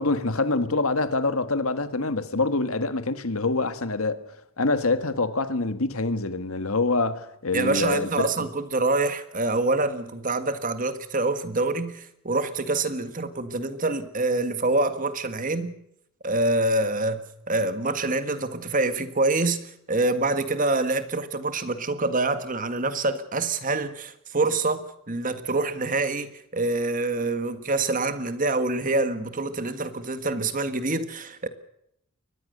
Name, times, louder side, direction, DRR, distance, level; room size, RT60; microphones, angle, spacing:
voice 1, 0.0-4.2 4.6-8.4, left 3 dB, 70° left, 1.7 m, -25 dB
voice 2, 7.5-15.8 16.2-31.5, right 2 dB, 35° right, 1.7 m, -26 dB
23.5 x 20.0 x 6.7 m
head